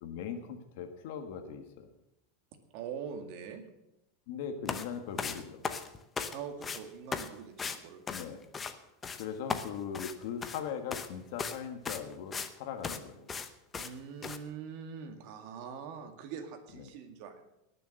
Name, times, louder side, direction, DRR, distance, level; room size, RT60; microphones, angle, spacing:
voice 1, 0.0-1.9 4.3-5.6 8.1-8.4 9.2-13.3, left 7 dB, 60° left, 7 dB, 1.6 m, -40 dB
voice 2, 2.7-3.6 6.3-8.0 13.8-17.5, right 7 dB, 50° right, 5 dB, 2.0 m, -43 dB
sound 1, 4.7-4.9 5.2-6.4 6.6-6.8 7.1-7.3 7.6-7.8 8.1-8.7 9.0-9.2 9.5-10.6 10.9-11.1 11.4-11.6 11.9-12.5 12.8-13.0 13.3-13.5 13.7-13.9 14.2-14.4, left 5 dB, 15° left, 0.7 m, -36 dB
18.5 x 7.0 x 6.5 m, 0.89 s
supercardioid pair, 155°, 0 cm